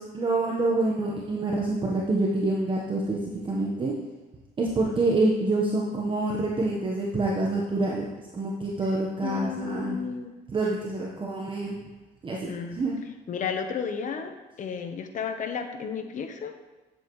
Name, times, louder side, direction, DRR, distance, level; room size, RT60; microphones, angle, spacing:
voice 1, 0.0-3.2 3.4-3.9 4.6-8.1 8.3-10.0 10.5-11.8 12.2-12.9, right 2 dB, 30° right, -3 dB, 1.2 m, -27 dB
voice 2, 9.2-10.3 12.5-12.8 13.3-16.5, left 6 dB, 50° left, 6 dB, 1.0 m, -33 dB
9.0 x 8.0 x 3.2 m, 1.1 s
cardioid pair, 110°, 17 cm